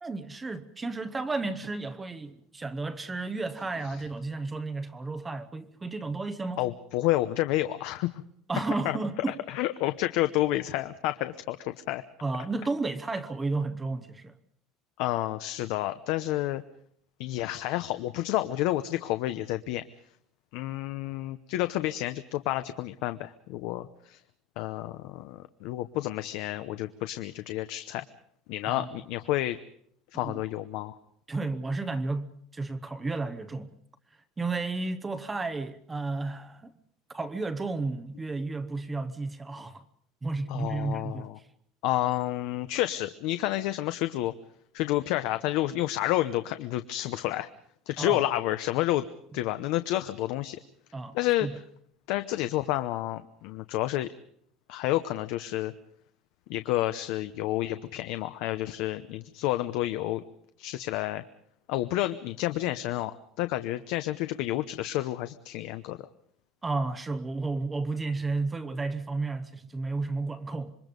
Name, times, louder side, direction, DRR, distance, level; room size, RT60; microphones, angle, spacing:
voice 1, 0.0-6.6 8.5-9.4 12.2-14.3 28.6-28.9 30.1-30.4 31.3-33.7 34.4-36.7 37.1-39.8 40.2-41.3 48.0-48.3 50.9-51.2 51.4-51.6 66.6-70.8, right 3 dB, 10° right, 0.9 m, -32 dB
voice 2, 6.6-8.2 8.8-9.0 9.3-12.0 15.0-16.6 17.2-19.8 20.5-24.2 24.6-28.0 28.5-29.6 30.1-31.0 40.5-41.4 41.8-44.3 44.7-47.5 47.9-49.1 49.3-50.6 51.1-51.5 52.1-54.1 54.7-55.7 56.5-60.2 60.6-61.2 61.7-66.1, left 15 dB, 60° left, 0.8 m, -30 dB
26.5 x 22.5 x 5.3 m
cardioid pair, 175°, 0 cm